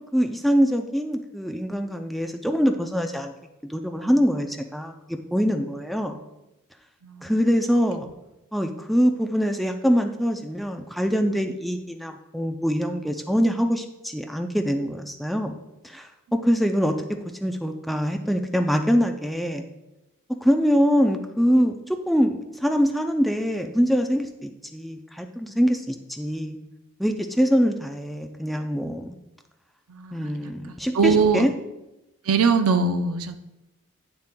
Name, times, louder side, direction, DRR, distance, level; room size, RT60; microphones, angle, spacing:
voice 1, 0.1-3.3 3.7-6.2 7.2-8.1 8.5-15.6 15.8-16.9 17.4-19.6 20.4-26.6 27.0-29.2 30.1-31.5, equal, ahead, 4 dB, 0.3 m, -24 dB
voice 2, 29.9-30.3 30.9-31.4 32.3-33.4, right 5 dB, 80° right, 7 dB, 0.5 m, -21 dB
9.2 x 6.9 x 2.2 m, 0.95 s
head